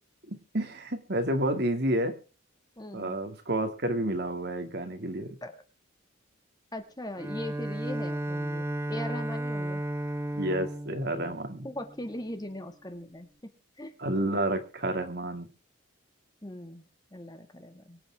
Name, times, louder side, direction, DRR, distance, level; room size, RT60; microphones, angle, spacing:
voice 1, 0.3-2.2 2.9-5.4 10.3-11.7 14.0-15.5, right 1 dB, 50° right, 8 dB, 2.3 m, -30 dB
voice 2, 2.8-3.2 5.4-5.6 6.7-9.8 11.6-13.5 13.8-13.9 14.3-14.4 16.4-16.8 17.1-18.0, left 1 dB, 20° left, 7 dB, 1.9 m, -39 dB
Bowed string instrument, 7.2-12.3, right 1 dB, 10° right, 0.8 m, -34 dB
24.5 x 8.9 x 3.6 m, 0.35 s
head